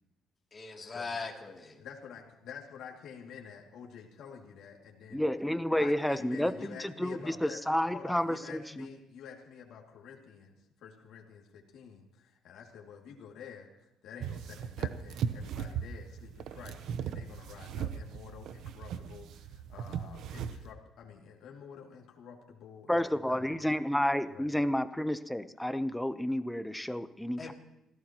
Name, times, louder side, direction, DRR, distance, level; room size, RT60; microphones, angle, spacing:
voice 1, 0.5-1.8 27.4-27.5, left 4 dB, 30° left, 0 dB, 2.8 m, -40 dB
voice 2, 1.8-5.2 5.8-7.6 7.9-10.5 10.8-11.4 11.7-12.0 12.4-13.7 14.0-16.8 17.1-19.3 19.7-22.9 23.3-23.6 24.3-24.7, left 7 dB, 80° left, 0 dB, 2.5 m, -48 dB
voice 3, 5.1-8.9 22.9-27.5, left 1 dB, 5° left, 11 dB, 0.8 m, -30 dB
sound 1, 14.2-20.7, right 8 dB, 75° right, 0.8 m, -38 dB
27.0 x 16.0 x 3.0 m, 0.87 s
cardioid pair, 110°, 0 cm